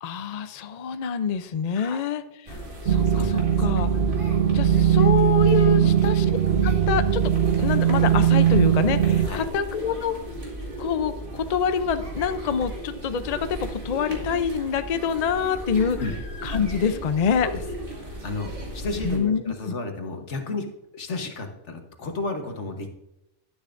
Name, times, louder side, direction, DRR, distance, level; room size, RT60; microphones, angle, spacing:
voice 1, 0.0-2.6 2.9-3.9 4.5-6.2 6.6-7.2 7.5-10.2 10.8-16.0 16.4-17.5 19.0-19.8, left 7 dB, 45° left, 10 dB, 0.6 m, -26 dB
sound 1, 2.5-19.2, equal, 50° right, 2.3 m, -36 dB
sound 2, 2.8-9.3, right 9 dB, 85° right, 1.1 m, -20 dB
voice 2, 3.0-3.6 4.7-4.8 5.7-6.0 9.2-9.5 16.0-16.1 17.4-17.6 18.2-20.7 20.9-22.9, left 3 dB, 85° left, 4 dB, 1.6 m, -32 dB
11.5 x 10.5 x 2.6 m, 0.89 s
omnidirectional pair, 1.2 m